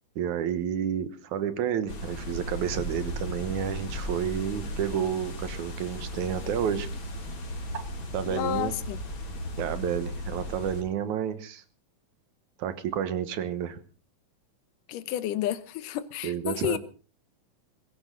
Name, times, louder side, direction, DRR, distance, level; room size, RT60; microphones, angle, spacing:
voice 1, 0.2-6.9 7.7-7.8 8.1-8.7 9.6-11.6 12.6-13.8 16.2-16.8, right 9 dB, 70° right, 2.5 m, -30 dB
sound 1, 1.9-10.8, left 1 dB, 40° left, 2.9 m, -36 dB
voice 2, 8.3-9.0 14.9-16.8, left 13 dB, 80° left, 2.5 m, -31 dB
20.5 x 16.5 x 3.9 m
omnidirectional pair, 3.8 m